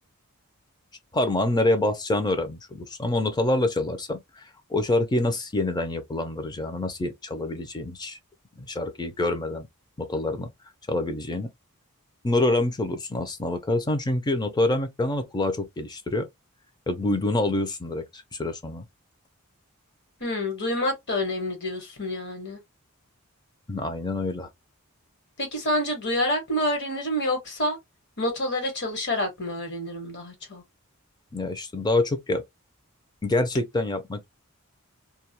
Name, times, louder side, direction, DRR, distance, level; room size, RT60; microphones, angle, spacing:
voice 1, 1.1-4.4 4.7-8.2 8.6-9.7 10.0-10.5 10.9-11.5 12.2-16.3 16.9-18.8 23.7-24.5 31.3-32.4 33.2-34.3, left 2 dB, 20° left, 0.4 m, -26 dB
voice 2, 20.2-22.6 25.4-27.8 28.2-30.6, left 1 dB, 55° left, 1.2 m, -28 dB
2.3 x 2.1 x 2.7 m
head